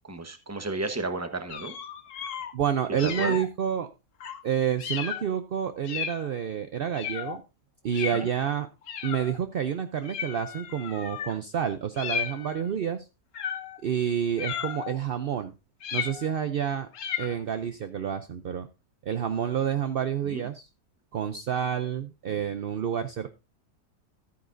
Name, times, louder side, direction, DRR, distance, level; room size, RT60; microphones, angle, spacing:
voice 1, 0.0-1.7 2.9-3.4 8.2-8.3 20.2-20.5, right 3 dB, 10° right, 8 dB, 0.9 m, -33 dB
sound 1, 1.5-2.5 3.0-3.5 4.2-4.4 4.8-5.3 5.8-6.3 6.9-7.4 7.9-8.3 8.9-9.4 10.0-11.4 12.0-12.7 13.3-13.8 14.4-15.0 15.8-16.4 16.9-17.4, left 8 dB, 60° left, 1.1 m, -34 dB
voice 2, 2.5-3.9 4.4-7.4 7.8-8.7 9.0-13.1 13.8-15.5 15.9-16.9 17.2-18.7 19.0-20.7 21.1-23.3, right 8 dB, 65° right, 9 dB, 0.5 m, -29 dB
13.5 x 9.5 x 2.6 m, 0.28 s
omnidirectional pair, 1.7 m